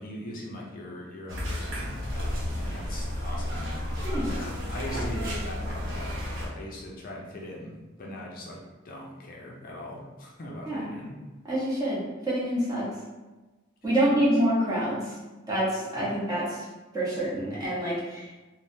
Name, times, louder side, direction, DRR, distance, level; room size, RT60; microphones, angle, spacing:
voice 1, 0.0-11.2 13.9-14.1, left 1 dB, 45° left, -2 dB, 0.5 m, -41 dB
sound 1, 1.3-6.5, left 1 dB, 75° right, 0.8 m, -32 dB
voice 2, 4.0-4.3 10.6-10.9 11.5-12.9 13.8-15.1 15.5-16.6 16.9-18.3, right 1 dB, 20° right, -8 dB, 1.0 m, -27 dB
3.4 x 2.1 x 2.6 m, 1.2 s
head